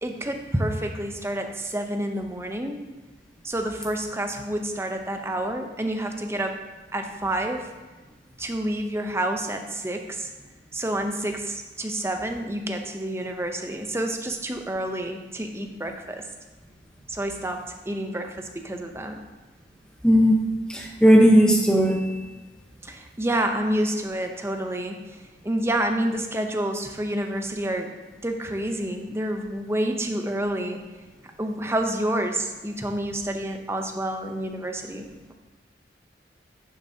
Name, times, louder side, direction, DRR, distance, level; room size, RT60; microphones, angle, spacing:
voice 1, 0.0-2.8 3.4-6.6 6.9-7.7 8.4-10.3 10.7-16.3 17.1-19.2 22.8-25.2 25.4-27.9 28.2-30.8 31.4-35.0, right 1 dB, 15° right, 4 dB, 0.6 m, -28 dB
voice 2, 20.0-20.4 20.7-22.0, equal, 5° left, 0 dB, 0.9 m, -16 dB
10.5 x 7.0 x 2.8 m, 1.2 s
head